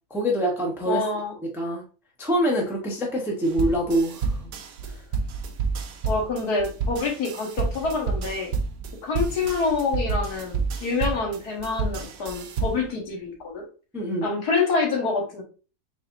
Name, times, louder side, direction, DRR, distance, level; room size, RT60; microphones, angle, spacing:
voice 1, 0.1-1.0 1.4-1.8 2.2-4.4 4.9-5.0 13.9-14.3, right 1 dB, ahead, -1 dB, 0.6 m, -25 dB
voice 2, 0.9-1.3 6.1-8.5 9.0-13.6 14.2-15.4, left 4 dB, 80° left, 0 dB, 1.7 m, -26 dB
sound 1, 3.4-12.9, right 4 dB, 75° right, 1.1 m, -29 dB
4.3 x 3.5 x 2.5 m, 0.36 s
omnidirectional pair, 1.7 m